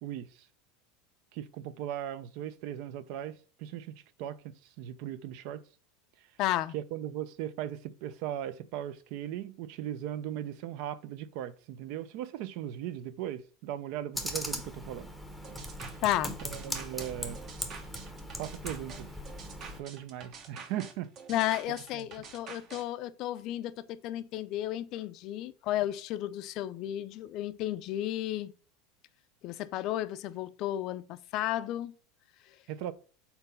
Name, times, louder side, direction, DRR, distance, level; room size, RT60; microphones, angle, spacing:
voice 1, 1.3-3.9 4.2-4.4 4.8-5.6 6.7-15.1 16.4-17.4 18.4-19.1 19.8-21.1 21.9-22.1 32.7-32.9, right 11 dB, 55° right, 0.6 m, -38 dB
voice 2, 6.4-6.7 16.0-16.3 21.3-28.5 29.4-31.9, left 13 dB, 45° left, 0.4 m, -33 dB
Computer keyboard, 14.1-19.8, equal, ahead, 0.8 m, -39 dB
sound 1, 15.4-22.8, right 5 dB, 40° right, 1.0 m, -47 dB
4.4 x 4.0 x 5.4 m
supercardioid pair, 145°, 0 cm